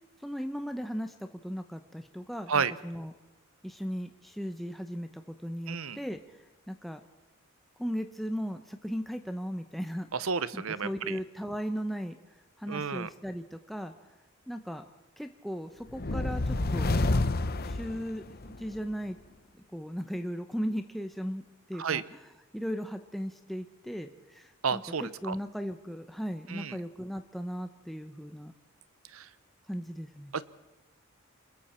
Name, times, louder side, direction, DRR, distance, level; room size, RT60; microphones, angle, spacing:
voice 1, 0.2-3.1 3.6-6.4 6.7-7.0 7.8-10.1 10.5-12.2 12.6-13.9 14.5-14.8 15.2-16.9 17.6-19.2 19.7-21.4 21.7-28.5 29.7-30.3, equal, ahead, 6 dB, 0.8 m, -37 dB
voice 2, 5.7-6.0 10.1-11.2 12.7-13.1 21.8-22.0 24.6-25.4 26.5-26.8 29.1-29.2 30.3-30.4, right 5 dB, 75° right, 16 dB, 0.9 m, -31 dB
sound 1, 15.9-18.7, left 2 dB, 45° left, 0.9 m, -28 dB
27.0 x 21.5 x 4.4 m, 1.1 s
head